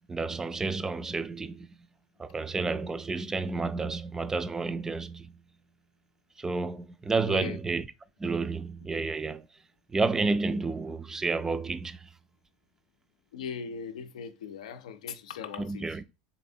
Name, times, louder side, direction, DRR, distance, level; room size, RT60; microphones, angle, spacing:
voice 1, 0.1-1.7 2.2-5.3 6.4-7.9 8.2-9.5 9.9-12.1 15.6-16.0, right 3 dB, 15° right, 0.3 m, -30 dB
voice 2, 7.2-7.6 13.3-16.0, left 6 dB, 90° left, 0.4 m, -39 dB
4.1 x 3.4 x 2.6 m
supercardioid pair, 105°, 4 cm